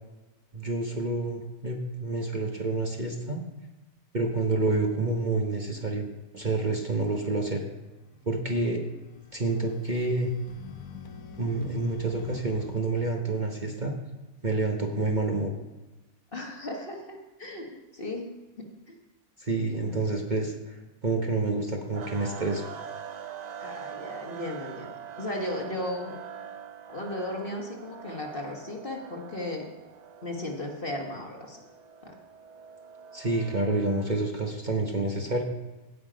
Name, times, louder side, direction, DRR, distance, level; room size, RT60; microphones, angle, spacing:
voice 1, 0.5-3.4 4.1-6.1 6.3-7.6 8.2-8.8 9.3-10.3 11.4-14.0 14.4-15.5 19.4-22.6 33.1-35.4, right 2 dB, 35° right, 1 dB, 1.1 m, -28 dB
sound 1, 8.0-12.8, left 6 dB, 70° left, 1.3 m, -47 dB
voice 2, 16.3-18.3 18.6-19.0 19.7-20.0 23.6-26.1 26.9-29.7 30.2-31.6 32.0-32.1, left 1 dB, 40° left, 1 dB, 1.6 m, -36 dB
sound 2, 21.9-34.3, right 7 dB, 55° right, 0.4 m, -44 dB
17.0 x 6.0 x 5.1 m, 1.1 s
omnidirectional pair, 1.5 m